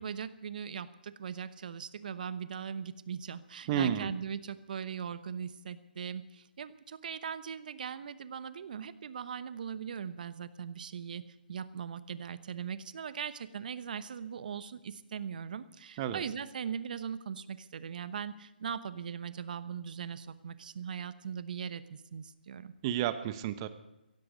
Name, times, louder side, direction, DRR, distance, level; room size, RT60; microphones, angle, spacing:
voice 1, 0.0-11.2 11.5-22.7, right 7 dB, 55° right, 14 dB, 1.0 m, -40 dB
voice 2, 3.7-4.1 16.0-16.2 22.8-23.7, right 10 dB, 30° right, 12 dB, 1.1 m, -31 dB
16.5 x 16.0 x 5.2 m, 0.92 s
figure-of-eight pair, 145°, 6 cm